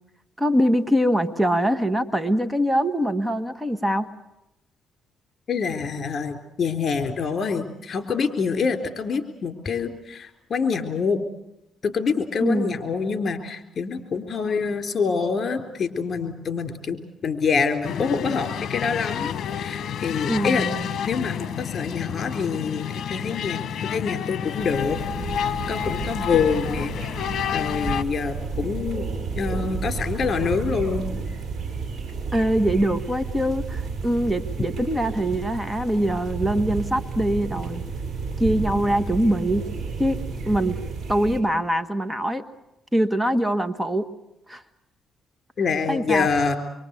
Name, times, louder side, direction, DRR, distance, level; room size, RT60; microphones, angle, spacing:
voice 1, 0.4-4.1 12.4-12.8 20.3-21.0 32.3-37.8 38.4-39.6 40.0-40.8 41.1-42.4 42.9-44.1 44.5-44.6 45.6-46.3, equal, 10° right, 10 dB, 1.5 m, -23 dB
voice 2, 5.5-11.2 11.8-20.7 21.1-25.0 25.7-26.9 27.5-29.1 29.4-31.1 45.6-46.6, left 5 dB, 45° left, 7 dB, 3.8 m, -26 dB
sound 1, 17.8-28.0, left 9 dB, 65° left, 1.2 m, -30 dB
sound 2, 24.6-41.4, right 4 dB, 50° right, 6.5 m, -32 dB
25.5 x 24.0 x 8.3 m, 0.86 s
cardioid pair, 90°, 0 cm